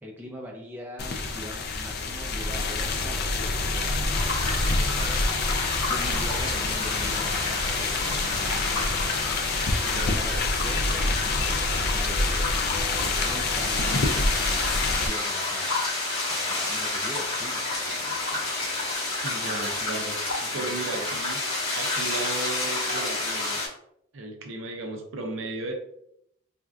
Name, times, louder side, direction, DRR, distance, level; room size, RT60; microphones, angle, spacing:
voice 1, 0.0-5.2 5.5-8.5 8.9-9.2 9.9-12.5 12.9-18.8 19.4-20.1 20.4-21.1, equal, 10° right, -2 dB, 0.5 m, -43 dB
sound 1, 1.0-15.1, left 3 dB, 45° left, 0.3 m, -27 dB
sound 2, 4.1-23.7, left 2 dB, 85° left, 1.4 m, -30 dB
voice 2, 9.7-10.2 19.2-20.2 20.5-21.4 21.7-23.6 24.1-25.7, right 3 dB, 60° right, 4 dB, 0.5 m, -35 dB
4.2 x 2.4 x 2.3 m, 0.75 s
head